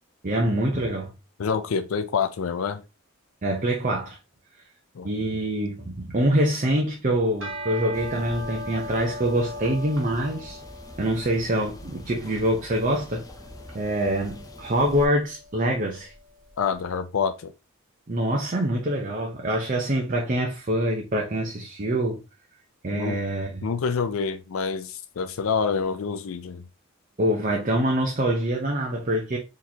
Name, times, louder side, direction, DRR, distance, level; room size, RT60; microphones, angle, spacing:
voice 1, 0.2-1.1 3.4-4.2 5.0-10.6 11.0-13.2 13.7-16.1 18.1-22.2 22.8-23.7 27.2-29.4, right 1 dB, 40° right, 0.6 m, -25 dB
voice 2, 1.4-2.8 5.0-5.1 16.6-17.5 22.9-23.2 23.6-26.6, left 6 dB, 75° left, 0.4 m, -27 dB
sound 1, 7.4-16.6, left 1 dB, 65° right, 1.2 m, -40 dB
sound 2, 7.9-15.1, left 1 dB, 15° left, 0.5 m, -44 dB
4.1 x 3.1 x 2.7 m
head